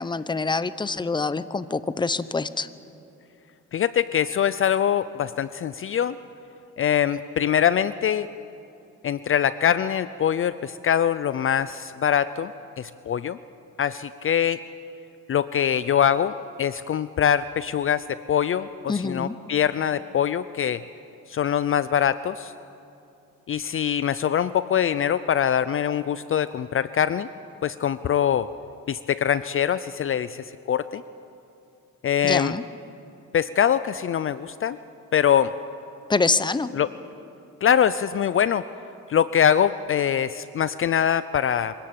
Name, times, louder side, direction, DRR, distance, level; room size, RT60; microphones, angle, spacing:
voice 1, 0.0-2.7 18.9-19.4 32.2-32.6 36.1-36.7, left 4 dB, 15° left, 15 dB, 0.8 m, -25 dB
voice 2, 3.7-6.2 6.8-8.3 9.0-12.5 12.8-13.4 13.8-14.6 15.3-16.3 16.6-20.8 21.3-22.5 23.5-27.3 27.6-28.5 28.9-31.0 32.0-32.5 33.3-34.8 35.1-35.5 36.7-36.9 37.6-38.6 39.1-41.7, left 9 dB, 45° left, 15 dB, 0.6 m, -23 dB
24.0 x 17.0 x 8.9 m, 2.7 s
cardioid pair, 90°, 30 cm